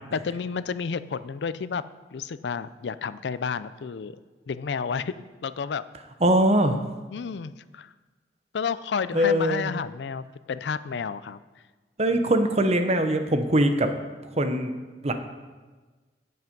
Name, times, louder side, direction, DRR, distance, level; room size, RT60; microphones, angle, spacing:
voice 1, 0.1-1.8 2.1-4.1 4.5-5.8 7.1-7.9 8.5-11.4, left 6 dB, 70° left, 15 dB, 0.4 m, -31 dB
voice 2, 6.2-6.8 9.1-9.7 12.0-13.9 14.4-14.7 15.0-15.1, right 1 dB, 35° right, 8 dB, 0.9 m, -21 dB
17.0 x 5.8 x 5.3 m, 1.3 s
head